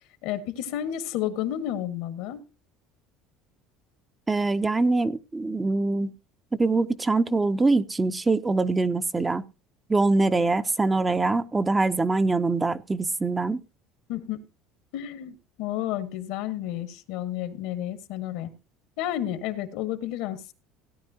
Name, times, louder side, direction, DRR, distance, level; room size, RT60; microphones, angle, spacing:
voice 1, 0.2-2.4 14.1-14.4 14.9-18.5 19.0-20.5, left 11 dB, 75° left, 1.7 m, -31 dB
voice 2, 4.3-6.1 6.6-9.4 9.9-13.6, right 3 dB, 15° right, 0.6 m, -23 dB
17.0 x 9.7 x 2.8 m
supercardioid pair, 115°, 0 cm